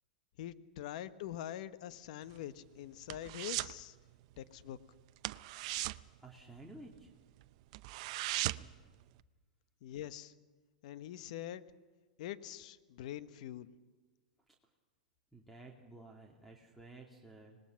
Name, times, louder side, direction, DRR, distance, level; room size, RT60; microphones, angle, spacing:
voice 1, 0.4-3.9 4.4-4.8 9.8-10.3 10.8-11.6 12.2-13.7, left 12 dB, 60° left, 13 dB, 1.2 m, -44 dB
sound 1, 2.2-3.8 4.1-4.4 4.7-4.8 5.2-7.0 7.4-7.5 7.7-8.8 9.2-9.3, right 19 dB, 55° right, 0.6 m, -38 dB
voice 2, 6.2-7.1 8.5-8.8 14.5-14.6 15.3-17.6, right 2 dB, ahead, 1 dB, 2.5 m, -54 dB
25.0 x 20.0 x 5.8 m, 1.3 s
hypercardioid pair, 115°, 4 cm